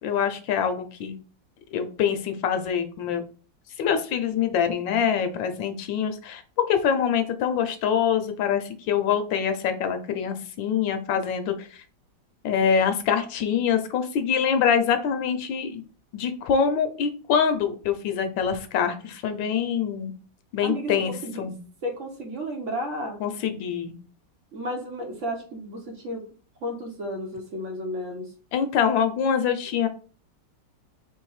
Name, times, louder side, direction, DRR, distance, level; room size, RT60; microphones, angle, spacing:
voice 1, 0.0-1.2 1.7-3.2 3.8-6.4 6.7-11.7 12.4-15.8 16.1-20.1 20.5-21.1 21.4-21.5 23.2-23.9 28.5-29.9, left 7 dB, 90° left, 8 dB, 1.5 m, -25 dB
voice 2, 20.6-21.5 21.8-23.2 24.5-26.2 26.6-28.3, equal, 50° right, 1 dB, 1.0 m, -33 dB
3.5 x 3.2 x 4.7 m, 0.39 s
omnidirectional pair, 2.0 m